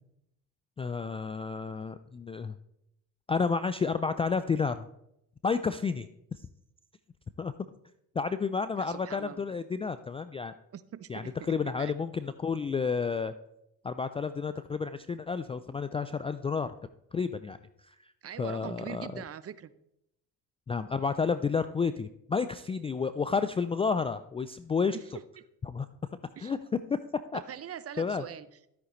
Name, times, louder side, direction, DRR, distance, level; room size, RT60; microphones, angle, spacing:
voice 1, 0.8-2.6 3.3-4.9 5.4-6.1 7.4-7.5 8.2-10.5 11.1-13.3 13.8-16.7 17.1-17.6 17.9-18.0 18.4-19.2 20.7-25.0 25.7-25.9 26.4-26.6 26.9-27.0 27.3-27.4 28.0-28.2, left 5 dB, 15° left, 12 dB, 0.3 m, -31 dB
voice 2, 8.8-9.6 10.7-11.9 18.2-19.7 24.9-25.2 26.4-26.5 27.3-28.5, right 9 dB, 35° right, 16 dB, 0.7 m, -42 dB
13.0 x 8.3 x 3.1 m, 0.79 s
hypercardioid pair, 65°, 44 cm